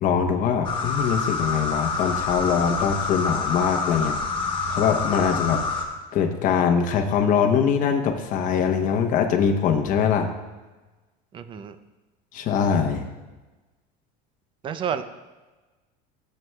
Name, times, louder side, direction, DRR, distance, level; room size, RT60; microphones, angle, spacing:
voice 1, 0.0-4.2 4.7-5.6 6.1-10.3 12.3-13.0, left 7 dB, 40° left, 3 dB, 0.9 m, -22 dB
sound 1, 0.6-5.8, left 4 dB, 25° left, 1.1 m, -27 dB
voice 2, 11.3-11.8 14.6-15.0, right 8 dB, 25° right, 11 dB, 0.4 m, -29 dB
14.0 x 7.7 x 2.3 m, 1.2 s
cardioid pair, 150°, 20 cm